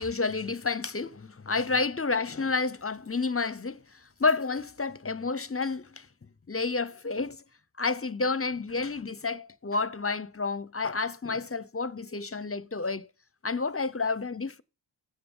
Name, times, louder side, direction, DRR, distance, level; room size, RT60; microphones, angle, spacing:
voice 1, 0.0-6.1 6.5-7.4 7.8-13.1 13.4-14.6, left 4 dB, 30° left, 0.7 m, -30 dB
14.0 x 8.5 x 5.5 m
wide cardioid pair, 45°, 49 cm